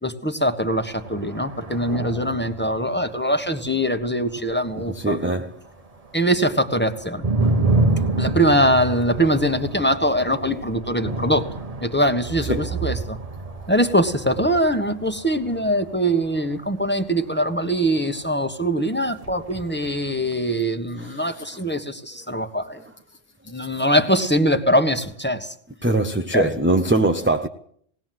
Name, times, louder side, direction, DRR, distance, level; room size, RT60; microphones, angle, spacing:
voice 1, 0.0-5.2 6.1-7.2 8.2-11.5 11.8-13.2 13.7-22.8 23.5-25.5 26.3-26.5, equal, 10° left, 1.3 m, -22 dB
sound 1, 0.7-5.7 6.0-18.7 19.1-20.5, right 2 dB, 35° right, 1.1 m, -29 dB
voice 2, 4.9-5.6 12.5-12.7 21.0-21.6 25.8-27.5, right 2 dB, 10° right, 0.7 m, -22 dB
19.5 x 17.5 x 7.7 m
omnidirectional pair, 1.1 m